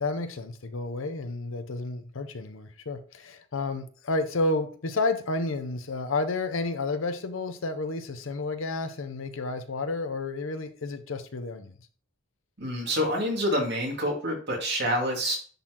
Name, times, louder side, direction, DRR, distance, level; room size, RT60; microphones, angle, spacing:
voice 1, 0.0-11.7, left 3 dB, 70° left, 0.7 m, -31 dB
voice 2, 12.6-15.4, equal, 55° right, 2.2 m, -27 dB
10.0 x 4.0 x 2.9 m
head